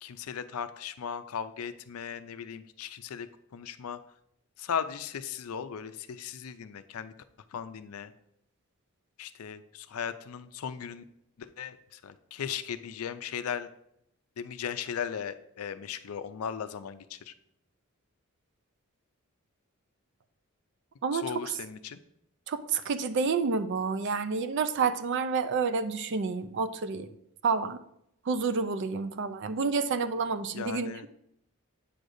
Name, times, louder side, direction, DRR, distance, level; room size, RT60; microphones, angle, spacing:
voice 1, 0.0-3.3 3.5-4.0 4.6-7.1 7.5-8.1 9.2-11.0 11.4-13.7 14.4-17.3 21.1-22.0 30.5-31.1, left 7 dB, 80° left, 11 dB, 0.4 m, -37 dB
voice 2, 21.0-21.3 22.5-27.1 27.4-27.8 28.3-31.1, right 5 dB, 55° right, 11 dB, 0.4 m, -29 dB
8.4 x 6.4 x 2.6 m, 0.76 s
head